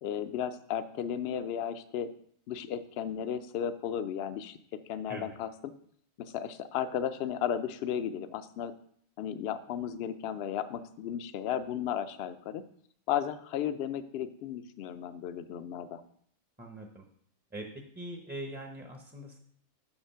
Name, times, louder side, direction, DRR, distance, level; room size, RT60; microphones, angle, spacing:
voice 1, 0.0-2.1 2.5-4.6 4.9-5.7 6.2-8.7 9.2-12.6 13.1-16.0, left 9 dB, 60° left, 12 dB, 0.7 m, -34 dB
voice 2, 16.6-17.0 17.5-17.7 17.9-19.4, right 1 dB, 10° right, 2 dB, 0.5 m, -42 dB
6.4 x 5.9 x 5.6 m, 0.65 s
omnidirectional pair, 1.4 m